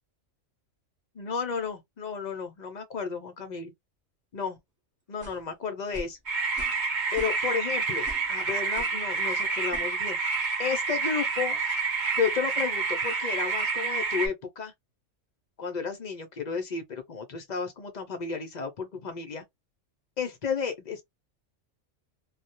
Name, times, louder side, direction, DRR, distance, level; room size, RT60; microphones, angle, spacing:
voice 1, 1.1-3.7 4.3-4.6 5.1-6.2 7.1-11.6 12.2-14.7 15.6-19.4 20.2-21.0, left 6 dB, 60° left, 0.4 m, -32 dB
sound 1, 5.2-5.5 5.9-6.2 6.6-6.8 7.1-7.6 8.0-8.3 8.7-9.0 9.7-9.9, right 1 dB, 25° right, 0.4 m, -42 dB
sound 2, 6.3-14.3, right 4 dB, 45° right, 0.8 m, -28 dB
2.3 x 2.0 x 2.7 m
omnidirectional pair, 1.3 m